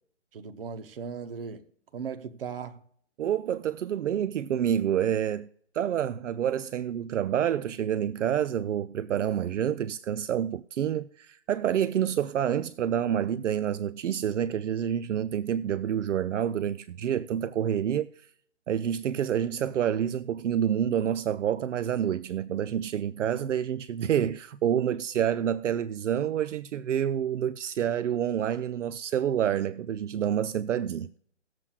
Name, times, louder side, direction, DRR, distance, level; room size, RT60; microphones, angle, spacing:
voice 1, 0.3-1.6 1.9-2.8, right 6 dB, 50° right, 0.9 m, -37 dB
voice 2, 3.2-5.5 5.7-18.1 18.7-31.2, right 9 dB, 80° right, 0.5 m, -28 dB
19.0 x 7.5 x 2.3 m
hypercardioid pair, 155°, 36 cm